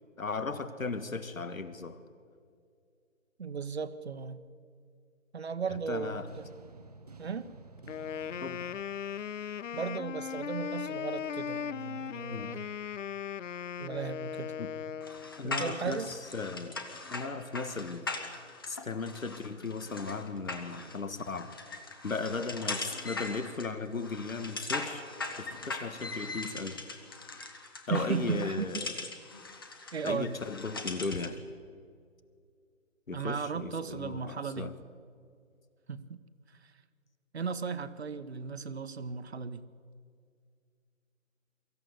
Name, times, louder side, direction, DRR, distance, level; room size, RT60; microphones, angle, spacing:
voice 1, 0.2-2.0 5.7-6.3 8.4-8.7 12.3-12.5 14.6-14.7 15.4-18.1 18.7-21.6 22.0-25.0 25.4-26.8 27.9-29.0 30.0-31.4 33.1-34.7, left 4 dB, 90° left, 12 dB, 1.7 m, -36 dB
voice 2, 3.4-4.4 5.3-6.4 7.2-7.5 9.7-12.7 13.8-14.5 15.4-16.1 27.9-28.8 29.9-30.3 33.1-34.7 35.9-36.2 37.3-39.6, right 5 dB, 50° right, 12 dB, 1.1 m, -36 dB
sound 1, 6.3-10.2, right 3 dB, 30° right, 0.7 m, -52 dB
Wind instrument woodwind instrument, 7.9-15.5, left 8 dB, 65° left, 0.5 m, -38 dB
sound 2, 15.0-31.4, left 3 dB, 15° left, 0.8 m, -40 dB
23.0 x 14.5 x 8.1 m, 2.2 s
figure-of-eight pair, 160°, 39 cm